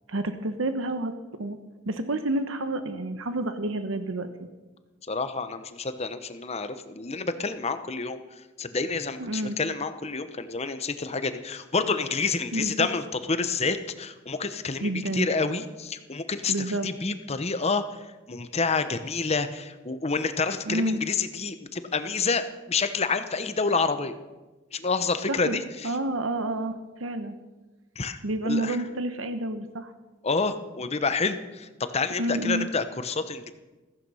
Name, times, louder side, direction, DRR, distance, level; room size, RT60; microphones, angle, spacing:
voice 1, 0.1-1.1 1.4-1.6 1.9-4.5 9.2-9.6 12.5-12.9 14.8-15.3 16.5-16.9 20.6-21.0 25.3-25.6 25.8-27.3 28.2-29.9 32.2-32.7, right 1 dB, 80° right, 9 dB, 1.1 m, -29 dB
voice 2, 5.1-8.2 8.6-18.0 18.3-24.1 24.7-25.9 28.0-28.2 28.4-28.8 30.2-33.5, left 4 dB, 30° left, 10 dB, 0.9 m, -28 dB
15.0 x 14.5 x 5.6 m, 1.2 s
head